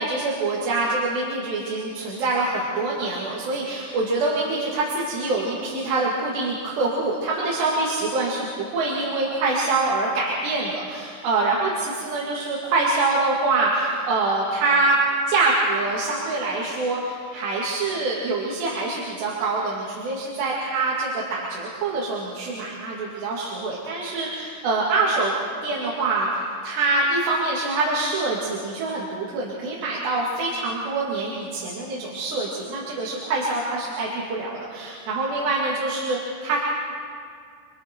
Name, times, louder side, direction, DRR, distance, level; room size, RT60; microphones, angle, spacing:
voice 1, 0.0-15.0 15.3-25.3 25.6-36.6, right 3 dB, 60° right, -5 dB, 4.5 m, -25 dB
29.5 x 24.5 x 4.7 m, 2.2 s
omnidirectional pair, 6.0 m